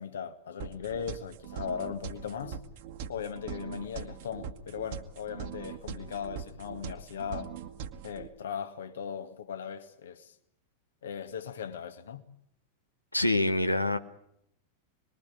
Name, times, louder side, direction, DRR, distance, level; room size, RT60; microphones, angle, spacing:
voice 1, 0.0-2.6 3.1-7.5 8.0-10.3 11.0-12.2, left 7 dB, 65° left, 1.9 m, -38 dB
sound 1, 0.6-8.3, right 7 dB, 50° right, 1.6 m, -42 dB
voice 2, 13.1-14.0, left 2 dB, 85° left, 1.4 m, -25 dB
25.5 x 21.5 x 8.5 m
figure-of-eight pair, 90°, 0 cm